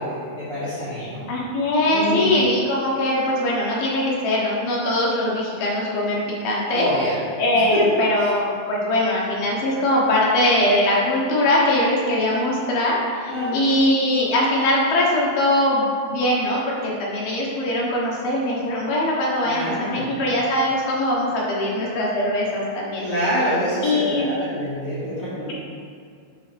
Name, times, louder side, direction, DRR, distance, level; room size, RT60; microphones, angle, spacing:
voice 1, 0.0-1.2 1.9-2.4 6.7-7.2 7.7-7.8 8.2-8.3 13.3-13.7 19.4-20.1 23.0-25.5, equal, 40° left, -13 dB, 2.2 m, -26 dB
voice 2, 1.0-6.9 7.4-23.0 23.8-24.3, left 1 dB, 65° left, -5 dB, 2.5 m, -21 dB
11.0 x 6.0 x 3.4 m, 2.2 s
omnidirectional pair, 5.7 m